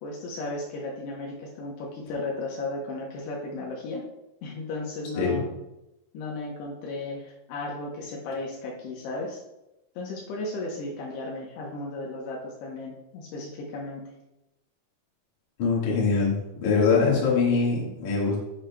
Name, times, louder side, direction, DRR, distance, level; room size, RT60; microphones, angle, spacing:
voice 1, 0.0-4.0 4.4-5.5 6.1-9.4 10.0-14.0, left 2 dB, 80° left, -2 dB, 2.9 m, -35 dB
voice 2, 15.6-18.4, left 4 dB, 55° left, -5 dB, 2.5 m, -23 dB
8.7 x 6.3 x 2.2 m, 0.94 s
omnidirectional pair, 4.9 m